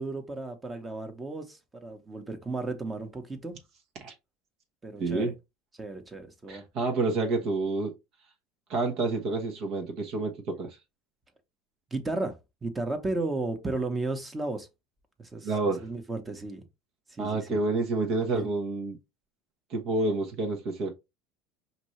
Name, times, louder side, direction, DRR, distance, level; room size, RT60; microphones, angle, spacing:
voice 1, 0.0-3.6 4.8-5.3 5.8-6.6 11.9-14.7 15.2-15.5 15.8-16.6 17.1-17.6 18.3-18.5, right 2 dB, 15° right, 1.1 m, -34 dB
voice 2, 5.0-5.3 6.5-7.9 8.7-10.8 15.4-15.8 17.2-19.0 19.7-20.9, right 3 dB, 55° right, 1.1 m, -29 dB
5.1 x 2.8 x 3.1 m
supercardioid pair, 110°, 0 cm